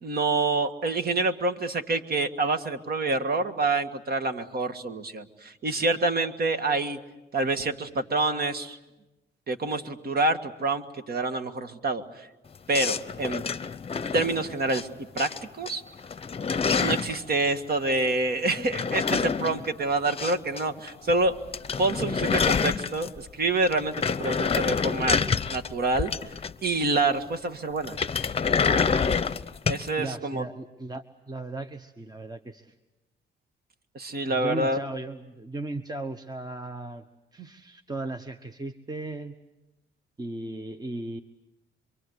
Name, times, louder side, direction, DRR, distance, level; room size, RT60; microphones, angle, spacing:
voice 1, 0.0-7.0 7.3-8.8 9.5-12.3 12.7-13.4 14.1-14.9 15.2-15.8 16.8-21.4 21.8-26.1 26.6-28.3 29.7-30.4 34.0-34.8, right 2 dB, 50° right, 8 dB, 1.8 m, -27 dB
sound 1, 12.7-14.8 15.2-15.7 16.0-17.2 18.5-20.6 20.9-21.0 21.3-21.4 21.5-23.3 23.7-26.8 27.8-29.9, left 5 dB, 30° left, 0.8 m, -27 dB
voice 2, 30.0-32.7 34.3-37.0 37.3-39.4 40.2-41.2, right 2 dB, 20° right, 8 dB, 1.1 m, -36 dB
27.0 x 24.0 x 8.1 m, 1.0 s
cardioid pair, 90°, 20 cm